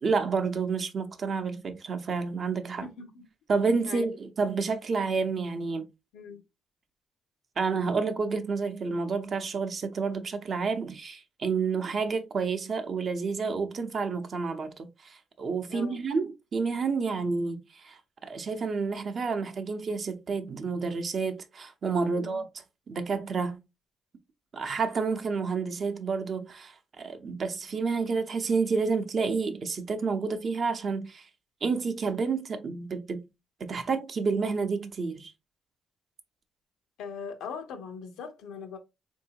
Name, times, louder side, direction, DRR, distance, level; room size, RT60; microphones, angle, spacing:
voice 1, 0.0-2.8 3.5-5.9 7.6-22.5 22.9-23.6 24.5-31.3 31.6-33.2 33.6-35.3, right 4 dB, 50° right, 0.7 m, -29 dB
voice 2, 2.8-3.2 3.9-4.1 6.1-6.4 15.7-16.0 22.0-22.4 37.0-38.8, left 5 dB, 85° left, 0.7 m, -40 dB
3.7 x 2.7 x 2.8 m
cardioid pair, 90°, 0 cm